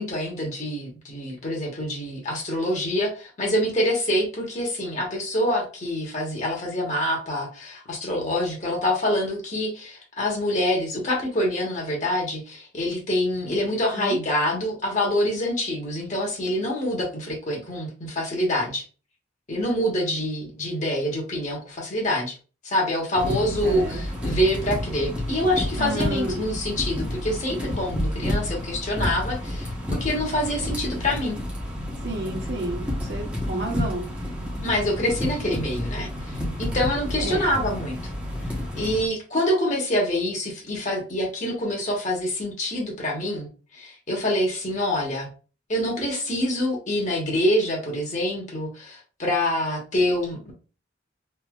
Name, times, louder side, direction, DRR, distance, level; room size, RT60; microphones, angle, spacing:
voice 1, 0.0-18.8 19.5-22.3 22.6-31.4 34.6-38.1 38.7-45.3 45.7-50.5, left 1 dB, 40° left, -1 dB, 1.1 m, -26 dB
sound 1, 23.2-39.1, left 1 dB, 5° right, 0.8 m, -30 dB
voice 2, 23.6-24.0 25.8-26.5 32.0-32.8 33.1-34.1 37.2-37.5, right 2 dB, 60° right, 0 dB, 1.1 m, -30 dB
3.2 x 2.6 x 2.4 m, 0.36 s
head